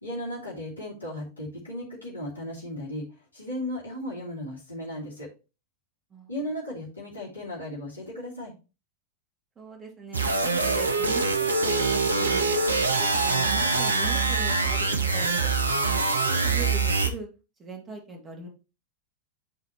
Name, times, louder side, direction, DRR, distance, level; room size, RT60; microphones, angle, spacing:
voice 1, 0.0-3.1 3.3-5.3 6.3-8.5, left 1 dB, 80° left, -5 dB, 2.7 m, -35 dB
voice 2, 6.1-6.5 9.6-12.4 12.9-15.5 16.2-17.3 17.6-18.5, right 3 dB, 25° right, 2 dB, 2.3 m, -41 dB
sound 1, 10.1-17.1, right 3 dB, 75° right, 0.8 m, -24 dB
10.5 x 4.0 x 2.9 m, 0.31 s
figure-of-eight pair, 90°, 0 cm